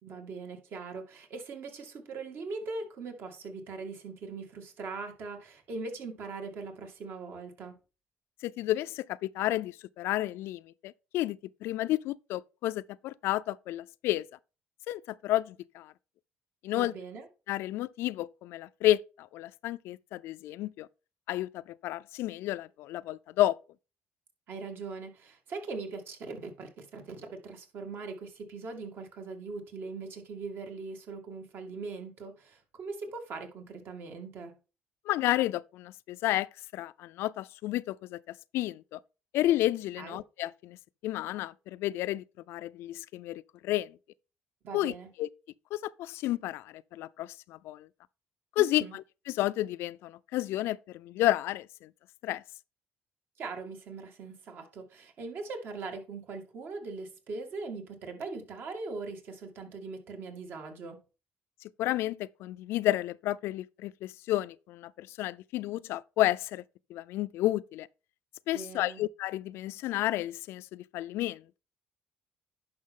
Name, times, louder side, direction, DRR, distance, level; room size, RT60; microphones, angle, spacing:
voice 1, 0.0-7.8 16.8-17.3 24.5-34.6 40.0-40.2 44.6-45.1 48.6-49.0 53.4-61.0 68.5-69.0, right 4 dB, 60° right, 2.1 m, -41 dB
voice 2, 8.4-14.3 14.9-15.9 16.6-16.9 17.5-20.9 21.3-23.6 35.1-36.5 36.7-39.0 39.3-40.8 41.0-44.0 44.7-45.3 45.7-47.9 48.6-51.9 52.2-52.4 61.8-66.6 66.9-67.9 68.5-71.6, left 15 dB, 80° left, 0.4 m, -31 dB
10.5 x 5.6 x 3.7 m
cardioid pair, 115°, 4 cm